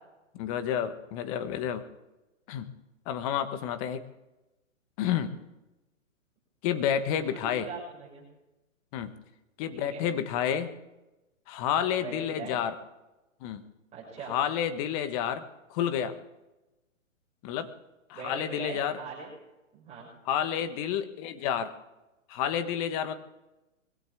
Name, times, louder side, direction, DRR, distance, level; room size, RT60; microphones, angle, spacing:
voice 1, 0.3-1.8 2.5-2.7 3.0-4.0 5.0-5.3 6.6-7.7 8.9-9.1 9.6-10.7 11.5-12.8 13.4-13.6 14.3-15.4 15.7-16.1 17.4-17.7 18.1-19.0 20.2-21.7 22.3-23.1, left 9 dB, 25° left, 10 dB, 1.3 m, -30 dB
voice 2, 7.1-8.2 9.7-10.1 12.0-12.6 13.9-14.3 18.1-19.3 19.7-20.1, right 4 dB, 15° right, -7 dB, 6.6 m, -41 dB
23.0 x 16.5 x 3.6 m, 1.0 s
hypercardioid pair, 145°, 40 cm